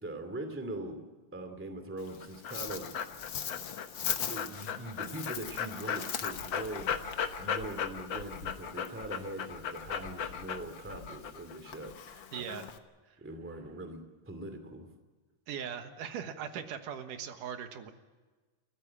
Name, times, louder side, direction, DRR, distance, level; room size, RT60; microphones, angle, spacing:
voice 1, 0.0-1.0 1.3-3.0 4.3-6.9 7.4-12.5 13.2-14.9, right 1 dB, 5° right, 7 dB, 1.9 m, -42 dB
Dog, 2.0-12.8, left 8 dB, 65° left, 1.2 m, -37 dB
voice 2, 12.3-12.7 15.5-17.9, right 8 dB, 75° right, 8 dB, 2.9 m, -39 dB
28.5 x 15.0 x 8.7 m, 1.3 s
omnidirectional pair, 3.7 m